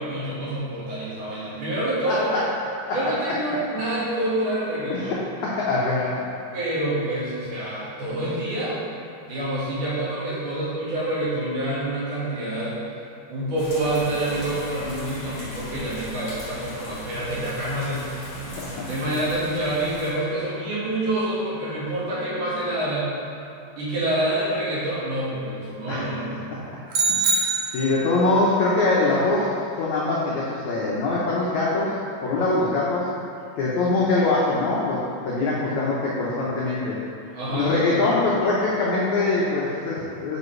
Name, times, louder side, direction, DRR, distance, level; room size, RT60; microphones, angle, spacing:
voice 1, 0.0-2.3 2.9-5.2 6.5-8.8 9.3-12.8 13.3-18.2 18.9-23.2 23.8-26.6 37.3-38.1, right 1 dB, 60° right, -9 dB, 2.9 m, -27 dB
voice 2, 5.4-6.2 18.4-18.9 25.9-26.1 26.5-26.6 27.1-27.4 27.7-29.5 29.8-31.9 32.2-33.1 33.6-37.0 37.5-40.4, left 2 dB, 80° left, -6 dB, 1.6 m, -23 dB
sound 1, 13.6-20.1, left 1 dB, 50° left, 2.3 m, -38 dB
sound 2, 26.9-28.2, right 4 dB, 75° right, 1.8 m, -23 dB
9.6 x 5.6 x 3.2 m, 2.7 s
omnidirectional pair, 4.6 m